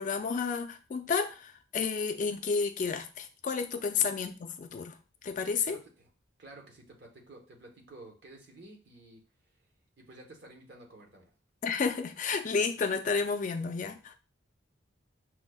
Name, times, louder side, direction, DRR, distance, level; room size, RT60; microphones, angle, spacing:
voice 1, 0.0-5.0 5.2-5.8 11.6-14.2, left 5 dB, 40° left, 0.3 m, -31 dB
voice 2, 5.7-6.1 6.4-9.2 10.0-11.3, right 2 dB, 55° right, 0.9 m, -52 dB
5.9 x 2.0 x 2.2 m
head